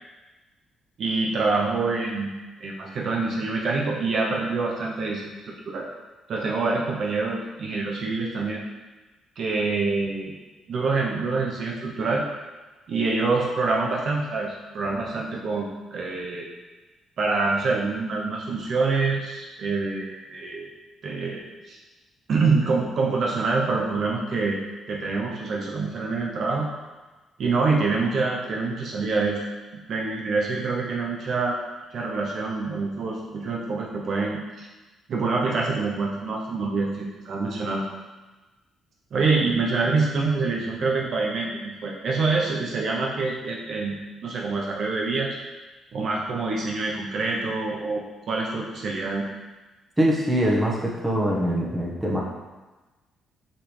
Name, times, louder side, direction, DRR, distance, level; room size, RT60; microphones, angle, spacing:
voice 1, 1.0-2.3 2.6-5.9 6.3-8.6 9.4-10.3 10.7-12.2 12.9-16.5 17.2-20.7 21.0-21.4 21.7-21.8 22.3-24.6 24.9-26.7 27.4-29.4 29.7-31.6 31.9-34.7 35.1-37.8 39.1-44.0 44.2-45.4 45.9-49.2, right 3 dB, 60° right, -2 dB, 0.9 m, -26 dB
voice 2, 50.0-52.2, equal, 15° right, -4 dB, 1.4 m, -23 dB
5.7 x 5.2 x 3.3 m, 1.2 s
cardioid pair, 90°, 0 cm